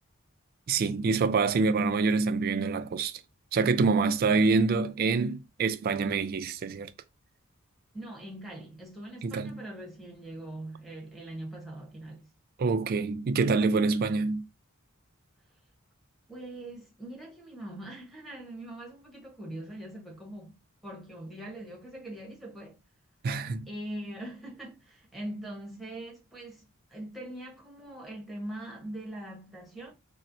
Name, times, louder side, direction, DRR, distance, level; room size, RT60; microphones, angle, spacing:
voice 1, 0.7-3.1 3.5-6.9 9.2-9.6 12.6-14.4 23.2-23.7, right 4 dB, 45° right, 0.3 m, -26 dB
voice 2, 7.9-12.3 16.3-22.8 23.7-29.9, right 1 dB, ahead, 1.0 m, -42 dB
4.1 x 2.0 x 2.6 m
head